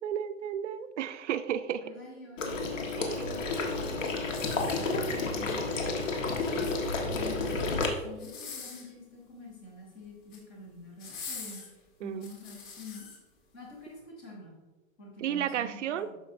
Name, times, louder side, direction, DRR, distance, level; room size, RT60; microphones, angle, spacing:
voice 1, 0.0-1.9 3.0-3.2 12.0-12.3 15.2-16.1, right 9 dB, 60° right, 11 dB, 0.6 m, -33 dB
voice 2, 1.8-3.5 3.8-6.0 6.5-13.1 13.5-14.6 15.0-16.2, left 2 dB, 10° left, -2 dB, 0.4 m, -47 dB
Water / Liquid, 2.4-7.9, left 3 dB, 65° left, 1.5 m, -31 dB
sound 1, 4.3-5.3 6.4-7.2 8.1-9.0 10.0-10.5 11.0-13.2 13.8-13.9, left 5 dB, 35° left, 1.7 m, -44 dB
12.5 x 5.1 x 2.6 m, 1.2 s
hypercardioid pair, 165°, 41 cm